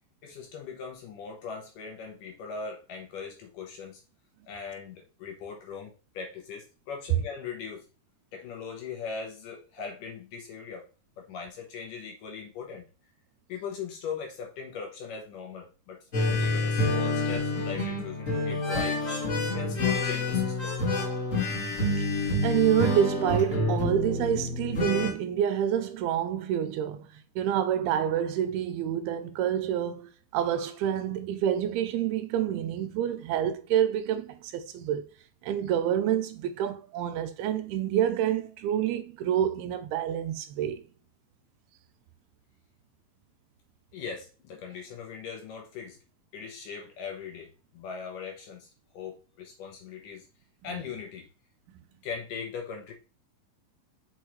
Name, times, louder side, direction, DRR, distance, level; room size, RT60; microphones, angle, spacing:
voice 1, 0.2-4.0 4.5-7.9 8.3-10.9 11.2-12.9 13.5-19.1 19.5-20.8 43.9-46.0 46.3-50.3 50.6-51.3 52.0-52.9, left 6 dB, 65° left, 2.3 m, -39 dB
sound 1, 16.1-25.1, left 2 dB, 45° left, 0.9 m, -28 dB
voice 2, 22.4-27.1 27.4-35.1 35.4-40.8, right 10 dB, 85° right, 2.5 m, -28 dB
6.2 x 5.5 x 3.1 m
omnidirectional pair, 4.6 m